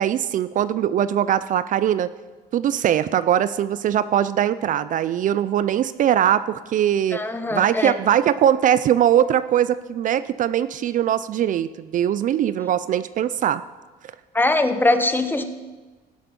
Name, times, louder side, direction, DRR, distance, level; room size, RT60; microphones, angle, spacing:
voice 1, 0.0-2.1 2.5-7.2 7.5-13.6, right 10 dB, 50° right, 15 dB, 0.4 m, -21 dB
voice 2, 7.1-8.0 14.3-15.4, left 2 dB, 10° left, 8 dB, 1.0 m, -21 dB
17.5 x 7.8 x 5.3 m, 1.3 s
cardioid pair, 110°, 17 cm